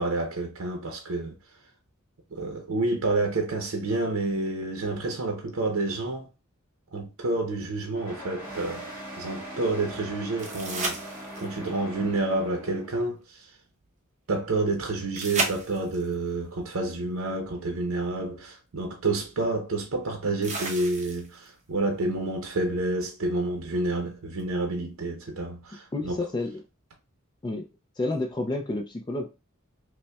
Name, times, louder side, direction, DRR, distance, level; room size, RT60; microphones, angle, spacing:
voice 1, 0.0-1.4 2.3-6.3 6.9-8.9 9.2-13.5 14.3-26.2, right 2 dB, 75° right, 0.7 m, -29 dB
sound 1, 7.9-13.0, right 1 dB, 10° right, 1.3 m, -40 dB
sound 2, 10.4-11.7 15.2-16.1 18.0-18.1 20.4-21.5 24.4-24.5, right 3 dB, 35° right, 0.9 m, -32 dB
voice 2, 25.9-26.6 27.4-27.7 28.0-29.3, left 2 dB, 20° left, 0.3 m, -30 dB
5.3 x 2.1 x 2.3 m
head